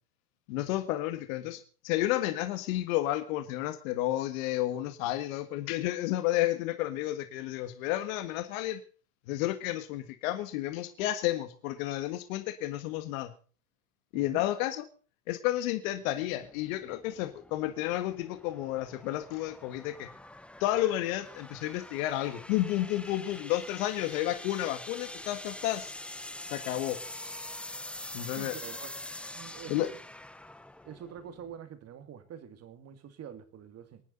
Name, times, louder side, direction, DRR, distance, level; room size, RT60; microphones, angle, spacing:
voice 1, 0.5-8.8 9.3-13.3 14.1-14.8 15.3-20.1 20.6-25.9 26.5-27.0 28.1-28.5 29.7-29.9, left 14 dB, 60° left, 1.7 m, -31 dB
sound 1, 16.2-31.6, left 1 dB, 5° left, 0.6 m, -45 dB
voice 2, 28.2-28.9 29.3-30.0 30.8-34.0, right 8 dB, 35° right, 2.3 m, -46 dB
25.0 x 9.6 x 4.0 m
supercardioid pair, 115°, 45 cm